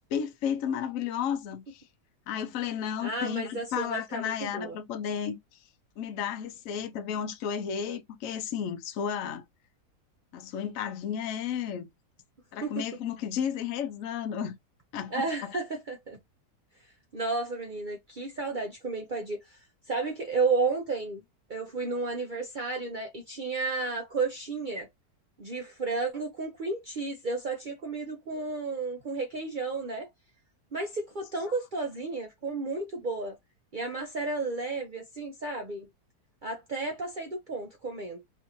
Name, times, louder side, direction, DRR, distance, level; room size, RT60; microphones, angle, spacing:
voice 1, 0.1-1.8 2.3-5.6 6.0-9.4 10.3-11.9 12.5-14.6 14.9-15.6 31.5-31.6, left 8 dB, 65° left, 0.9 m, -33 dB
voice 2, 3.0-4.8 12.6-12.7 15.1-16.2 17.1-19.6 19.9-21.2 21.5-24.9 25.4-30.1 30.7-33.3 33.7-35.9 36.4-38.2, right 3 dB, 70° right, 0.4 m, -32 dB
3.5 x 2.5 x 2.8 m
omnidirectional pair, 1.8 m